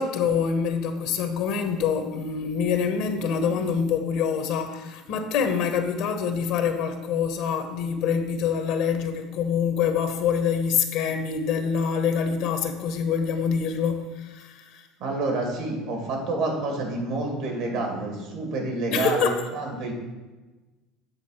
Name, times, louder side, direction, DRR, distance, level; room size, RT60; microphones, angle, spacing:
voice 1, 0.0-14.8 18.9-19.4, left 6 dB, 70° left, 7 dB, 1.0 m, -25 dB
voice 2, 15.0-19.9, right 2 dB, 75° right, 1 dB, 2.3 m, -28 dB
8.4 x 3.9 x 5.9 m, 1.2 s
supercardioid pair, 90°, 0 cm